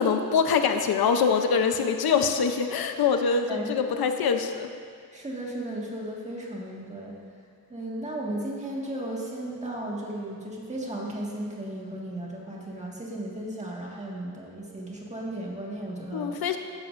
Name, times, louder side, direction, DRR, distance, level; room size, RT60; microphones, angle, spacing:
voice 1, 0.0-4.7 16.1-16.6, left 6 dB, 80° left, 6 dB, 0.7 m, -24 dB
voice 2, 5.1-7.2 7.7-16.4, right 1 dB, 20° right, -4 dB, 1.7 m, -35 dB
14.5 x 10.5 x 2.6 m, 2.2 s
wide cardioid pair, 160°, 36 cm